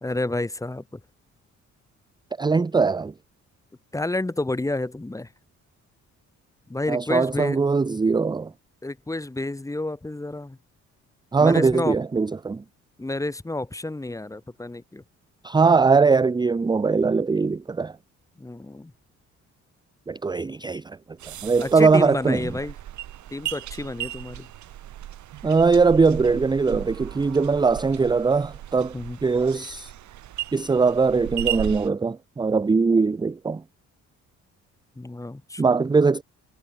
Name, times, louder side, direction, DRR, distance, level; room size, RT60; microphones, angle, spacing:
voice 1, 0.0-1.0 3.9-5.3 6.7-7.6 8.8-10.6 11.4-12.0 13.0-15.0 18.4-18.9 21.6-22.7 23.3-24.5 28.9-29.2 35.0-35.7, left 2 dB, 10° left, 1.2 m, -30 dB
voice 2, 2.4-3.1 6.9-8.5 11.3-12.6 15.4-17.9 20.1-21.0 21.3-22.6 25.4-29.9 30.5-33.6 35.6-36.2, right 4 dB, 15° right, 0.5 m, -21 dB
sound 1, 21.2-31.9, right 12 dB, 70° right, 1.6 m, -36 dB
cardioid pair, 90°, 30 cm